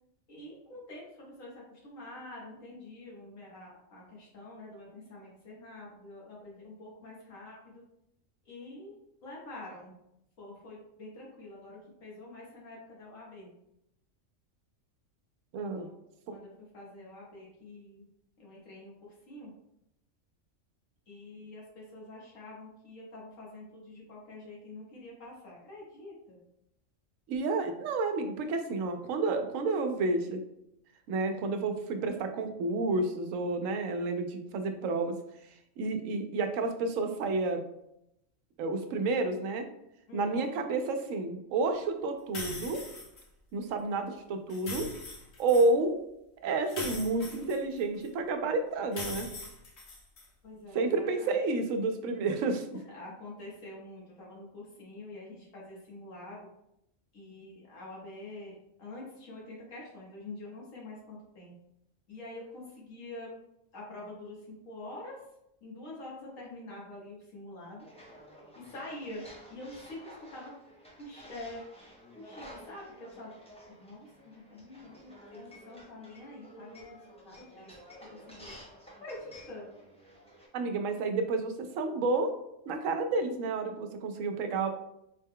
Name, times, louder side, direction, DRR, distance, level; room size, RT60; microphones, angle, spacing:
voice 1, 0.3-7.8 8.5-9.9 10.4-13.5 15.6-15.9 16.3-18.0 18.4-19.5 21.1-26.4 40.1-40.6 50.4-51.4 52.9-56.4 57.1-61.6 62.1-63.3 63.7-65.2 65.6-67.8 68.6-69.2 69.5-70.6 71.0-71.6 72.2-73.3 73.7-76.8 77.2-77.7 78.3-78.5 79.0-79.7, left 2 dB, 90° left, -4 dB, 1.7 m, -46 dB
voice 2, 15.5-15.9 27.3-30.4 31.1-35.2 35.8-37.6 38.6-39.6 40.1-42.8 43.5-44.9 45.4-46.0 46.4-49.3 50.7-52.7 80.5-82.3 82.7-84.7, right 3 dB, 80° right, 7 dB, 1.0 m, -30 dB
sound 1, 42.3-43.2 44.5-45.7 46.7-48.1 48.9-50.3, left 2 dB, 60° left, 1.1 m, -41 dB
sound 2, 67.8-80.5, equal, 10° left, 0.4 m, -52 dB
4.6 x 2.2 x 3.6 m, 0.82 s
omnidirectional pair, 1.3 m